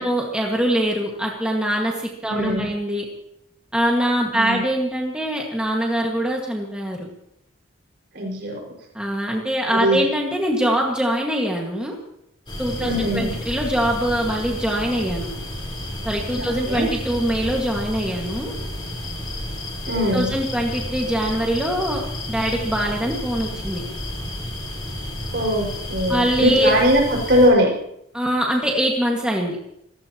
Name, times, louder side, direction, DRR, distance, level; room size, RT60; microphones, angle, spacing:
voice 1, 0.0-3.0 3.7-7.1 8.9-12.0 12.6-15.3 16.0-18.5 19.9-22.0 22.3-23.8 26.1-26.7 28.1-29.6, equal, 5° right, -1 dB, 1.8 m, -23 dB
voice 2, 2.3-2.7 4.3-4.6 8.1-8.6 9.6-10.0 12.8-13.4 16.4-16.9 19.9-20.3 25.3-27.7, equal, 55° right, 0 dB, 5.5 m, -21 dB
sound 1, 12.5-27.5, left 1 dB, 25° left, 4.3 m, -31 dB
28.5 x 15.5 x 3.0 m, 0.77 s
head